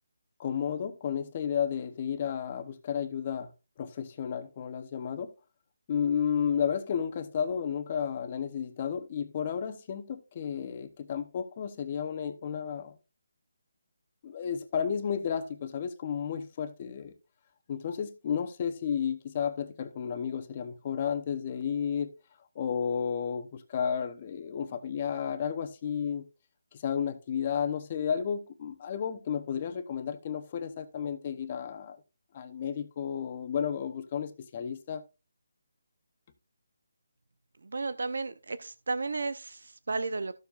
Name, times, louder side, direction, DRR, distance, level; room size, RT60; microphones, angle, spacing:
voice 1, 0.4-3.5 3.8-5.3 5.9-12.9 14.2-17.1 17.7-22.1 22.5-26.2 26.7-32.0 32.3-35.0, left 7 dB, 25° left, 0.8 m, -32 dB
voice 2, 37.6-40.4, right 3 dB, 70° right, 0.7 m, -33 dB
14.0 x 7.0 x 2.5 m
hypercardioid pair, 175°, 0 cm